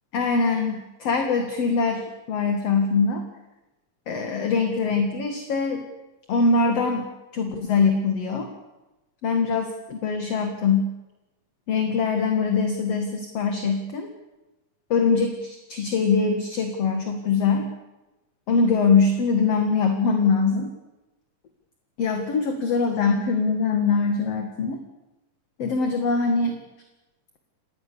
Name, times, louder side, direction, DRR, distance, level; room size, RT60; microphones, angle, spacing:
voice 1, 0.1-3.2 4.1-5.8 6.3-8.5 9.2-10.9 11.7-14.1 14.9-17.7 18.5-20.7 22.0-24.8 25.6-26.7, left 4 dB, 50° left, 5 dB, 2.6 m, -23 dB
26.5 x 20.0 x 7.0 m, 1.0 s
omnidirectional pair, 3.9 m